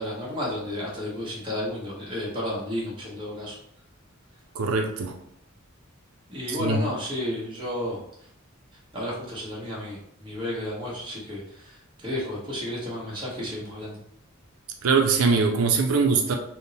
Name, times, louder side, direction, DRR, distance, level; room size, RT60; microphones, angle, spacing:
voice 1, 0.0-3.6 6.3-8.0 8.9-11.7 12.0-14.0, left 1 dB, 25° right, -5 dB, 1.1 m, -32 dB
voice 2, 4.5-5.1 6.5-6.8 14.8-16.3, right 4 dB, 85° right, 3 dB, 0.4 m, -22 dB
3.5 x 2.1 x 4.0 m, 0.72 s
head